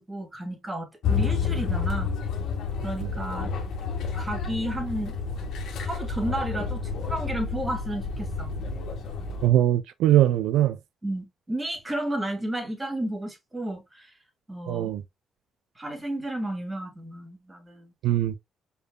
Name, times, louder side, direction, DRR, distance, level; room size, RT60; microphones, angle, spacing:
voice 1, 0.0-2.1 2.8-3.5 4.1-5.2 5.8-8.5 11.0-14.1 14.5-14.9 15.8-17.9, right 1 dB, 15° right, 2.5 m, -32 dB
sound 1, 1.0-9.5, left 5 dB, 75° left, 1.7 m, -30 dB
voice 2, 9.4-10.8 14.7-15.0 18.0-18.4, right 13 dB, 85° right, 0.5 m, -21 dB
5.0 x 4.6 x 2.2 m
cardioid pair, 90°, 0 cm